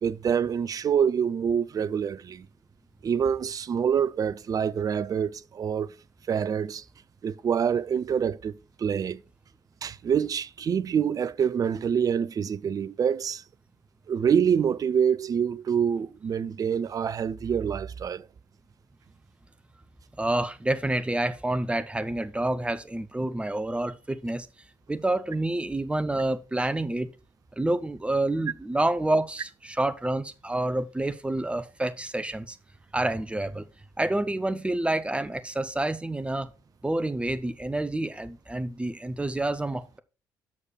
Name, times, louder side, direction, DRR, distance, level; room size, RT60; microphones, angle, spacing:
voice 1, 0.0-2.5 3.0-5.9 6.3-6.8 7.2-9.2 9.8-13.4 14.1-18.3, right 7 dB, 35° right, 0.5 m, -26 dB
voice 2, 20.2-24.5 24.9-27.1 27.6-32.6 32.9-33.7 34.0-36.5 36.8-40.0, right 1 dB, 10° right, 0.8 m, -28 dB
7.1 x 6.5 x 4.4 m
figure-of-eight pair, 45°, 10 cm